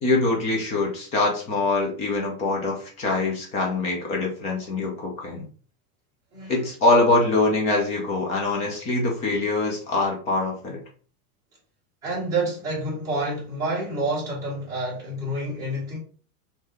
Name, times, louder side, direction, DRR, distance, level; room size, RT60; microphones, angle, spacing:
voice 1, 0.0-5.4 6.5-10.8, left 2 dB, 15° left, 0.5 m, -24 dB
voice 2, 12.0-16.0, right 2 dB, 10° right, 1.5 m, -28 dB
3.8 x 2.7 x 3.1 m
supercardioid pair, 175°, 43 cm